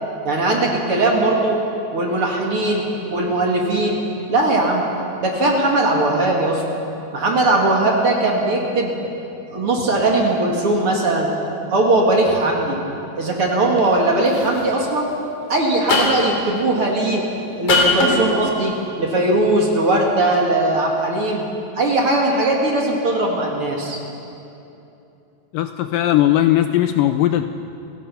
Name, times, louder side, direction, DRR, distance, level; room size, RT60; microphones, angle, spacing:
voice 1, 0.2-1.6 1.9-4.0 4.3-4.8 5.2-6.8 7.1-9.1 9.5-11.3 11.7-12.8 13.2-15.1 15.5-17.3 17.6-21.4 21.8-24.0, right 2 dB, 45° right, -1 dB, 2.5 m, -19 dB
sound 1, 13.8-14.0 14.3-14.6 15.9-16.4 17.7-18.2, left 3 dB, 55° left, 4.6 m, -19 dB
voice 2, 25.5-27.4, left 13 dB, 80° left, 9 dB, 2.0 m, -18 dB
28.5 x 17.0 x 5.7 m, 2.8 s
omnidirectional pair, 4.3 m